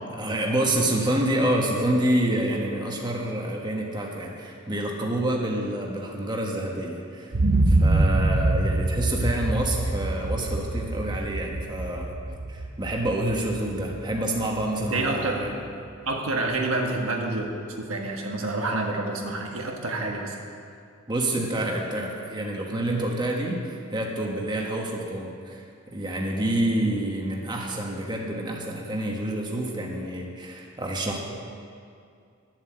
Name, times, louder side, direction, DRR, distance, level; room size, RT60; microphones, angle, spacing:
voice 1, 0.2-7.4 7.7-12.1 12.5-15.5 21.1-25.7 25.9-31.2, right 1 dB, 20° right, -1 dB, 1.3 m, -27 dB
sound 1, 7.3-15.2 15.6-15.7, right 2 dB, 50° right, 0.6 m, -25 dB
voice 2, 14.8-15.4 16.0-17.5 17.8-20.4, right 2 dB, 75° right, 1 dB, 1.5 m, -28 dB
10.5 x 7.6 x 7.6 m, 2.4 s
head